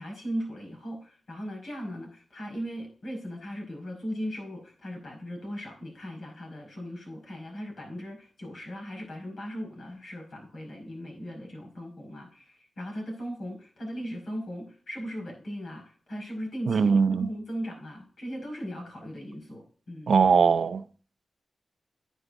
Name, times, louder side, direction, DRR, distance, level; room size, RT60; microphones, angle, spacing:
voice 1, 0.0-20.2, equal, 65° left, 5.1 m, -38 dB
voice 2, 16.7-17.3 20.1-20.9, right 5 dB, 65° right, 0.5 m, -21 dB
9.9 x 9.6 x 2.5 m
wide cardioid pair, 125°, 0 cm